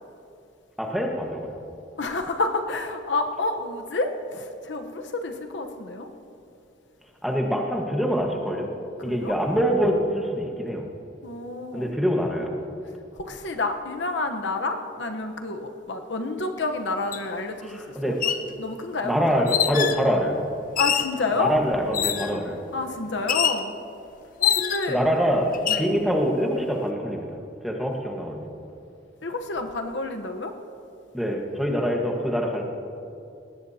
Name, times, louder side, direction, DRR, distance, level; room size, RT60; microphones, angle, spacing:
voice 1, 0.8-1.5 7.2-8.7 9.0-10.9 11.7-12.5 17.6-18.2 19.0-20.4 21.4-22.6 24.9-27.3 27.6-28.5 31.1-32.6, equal, ahead, 0 dB, 1.4 m, -25 dB
voice 2, 2.0-6.1 9.0-9.3 11.2-11.9 13.2-18.3 18.6-19.4 20.8-21.5 22.7-23.7 24.4-25.0 25.7-25.9 29.2-30.5, left 3 dB, 75° left, 5 dB, 1.0 m, -29 dB
sound 1, 17.1-17.2 18.1-18.5 19.5-20.0 20.8-21.2 21.9-22.4 23.3-23.6 24.4-25.0 25.5-25.9, left 9 dB, 50° left, 0.6 m, -24 dB
19.5 x 17.5 x 2.9 m, 2.6 s
head